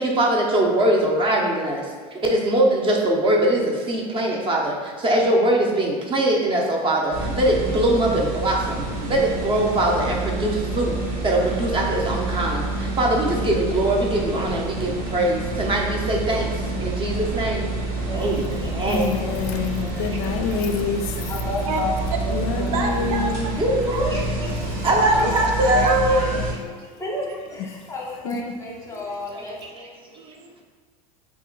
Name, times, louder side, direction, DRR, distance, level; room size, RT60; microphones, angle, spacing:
voice 1, 0.0-10.9 11.2-17.7 18.1-19.1 20.0-20.2 23.6-26.3 28.7-28.8 29.4-29.5, right 1 dB, 25° right, 0 dB, 0.6 m, -22 dB
sound 1, 7.1-26.5, right 2 dB, 50° right, 0.9 m, -28 dB
voice 2, 18.1-18.6 19.0-19.1 19.5-20.1 21.3-22.8 25.1-25.4 25.7-26.5 27.0-30.0, left 2 dB, 15° left, -2 dB, 0.8 m, -33 dB
voice 3, 18.8-21.3 22.3-23.5 24.5-24.9 28.2-28.3, left 5 dB, 60° left, 5 dB, 0.4 m, -27 dB
voice 4, 22.7-23.5 23.9-24.4 25.8-26.5 30.1-30.6, right 3 dB, 70° right, 2 dB, 0.5 m, -30 dB
2.8 x 2.4 x 3.8 m, 1.5 s
hypercardioid pair, 90°, 20 cm